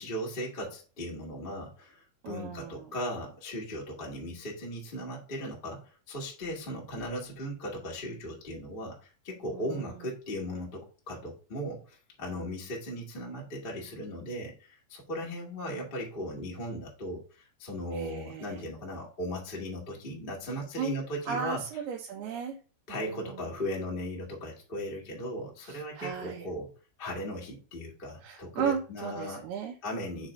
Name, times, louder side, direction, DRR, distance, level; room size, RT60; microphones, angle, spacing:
voice 1, 0.0-21.6 22.9-29.4 29.8-30.3, equal, 40° left, -2 dB, 0.7 m, -37 dB
voice 2, 2.2-2.9 9.5-10.0 17.9-18.6 20.8-20.9 21.3-22.6 22.9-23.4 25.6-26.5 28.2-29.8, right 7 dB, 85° right, 0 dB, 2.8 m, -36 dB
6.4 x 3.3 x 4.9 m, 0.36 s
omnidirectional pair, 4.5 m